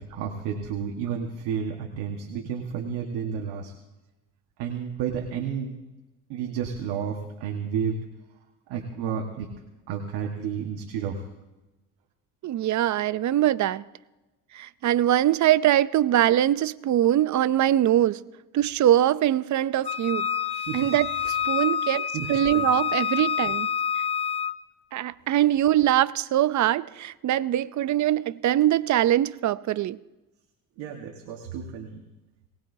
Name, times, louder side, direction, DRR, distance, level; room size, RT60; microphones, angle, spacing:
voice 1, 0.0-3.7 4.6-5.8 6.3-8.0 8.7-9.5 9.9-11.3 20.5-20.9 21.2-21.4 22.1-22.7 30.8-32.0, right 7 dB, 85° right, 1.6 m, -31 dB
voice 2, 12.4-13.8 14.5-18.2 18.5-20.3 20.7-23.7 24.9-30.0, right 12 dB, 45° right, 0.6 m, -22 dB
Wind instrument woodwind instrument, 19.8-24.6, left 8 dB, 15° left, 0.5 m, -28 dB
21.0 x 19.0 x 2.7 m
cardioid pair, 95°, 39 cm